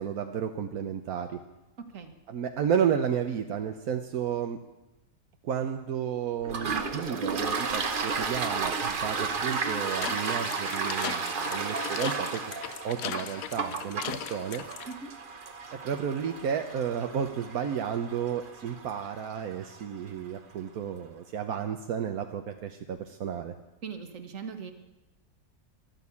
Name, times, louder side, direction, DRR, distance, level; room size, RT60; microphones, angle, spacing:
voice 1, 0.0-1.4 2.3-4.6 5.4-12.4 12.8-14.6 15.7-23.5, right 8 dB, 80° right, 5 dB, 1.3 m, -32 dB
Toilet flush, 6.4-19.8, right 4 dB, 40° right, 1.1 m, -33 dB
sound 1, 9.9-14.9, left 10 dB, 75° left, 1.1 m, -38 dB
voice 2, 23.8-24.7, right 6 dB, 60° right, 7 dB, 1.8 m, -39 dB
13.5 x 12.0 x 8.4 m, 1.0 s
omnidirectional pair, 1.5 m